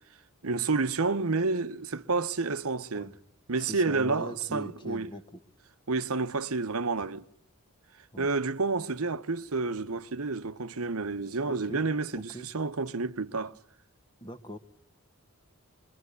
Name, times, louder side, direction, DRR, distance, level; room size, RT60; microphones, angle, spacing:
voice 1, 0.4-3.1 3.5-5.1 5.9-7.2 8.2-13.5, right 3 dB, 75° right, 1.0 m, -30 dB
voice 2, 3.6-5.4 8.1-8.3 11.4-11.8 12.1-12.5 14.2-14.6, equal, 20° left, 1.5 m, -41 dB
25.0 x 23.5 x 8.3 m
head